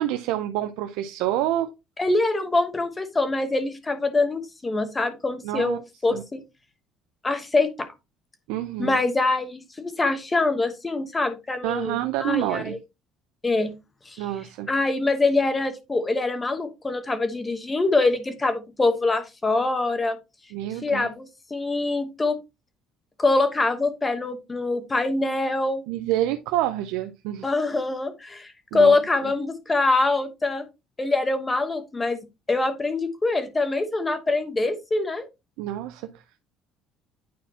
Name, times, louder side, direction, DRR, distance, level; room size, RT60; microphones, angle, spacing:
voice 1, 0.0-1.7 5.4-5.8 6.1-6.2 8.5-9.0 11.6-12.8 14.2-14.7 20.5-21.1 25.9-27.5 28.7-29.0 29.2-29.3 35.6-36.4, right 13 dB, 90° right, 0.5 m, -28 dB
voice 2, 2.0-6.4 7.2-7.9 8.8-12.8 13.4-13.7 14.1-14.2 14.7-20.2 20.8-22.4 23.2-25.8 27.4-30.7 31.0-32.2 32.5-35.3, left 3 dB, 15° left, 1.0 m, -24 dB
9.3 x 4.3 x 2.8 m
cardioid pair, 135°, 0 cm